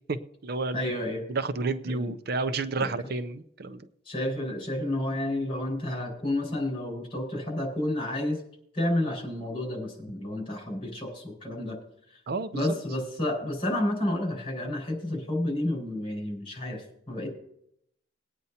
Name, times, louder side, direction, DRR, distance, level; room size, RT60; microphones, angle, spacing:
voice 1, 0.1-0.8 1.3-3.9 12.3-12.7, right 3 dB, 60° right, 12 dB, 0.6 m, -31 dB
voice 2, 0.7-1.2 1.8-2.1 2.8-2.9 4.1-8.4 8.7-11.8 12.5-17.3, left 1 dB, 30° left, 0 dB, 5.1 m, -30 dB
20.5 x 9.3 x 2.8 m, 0.72 s
head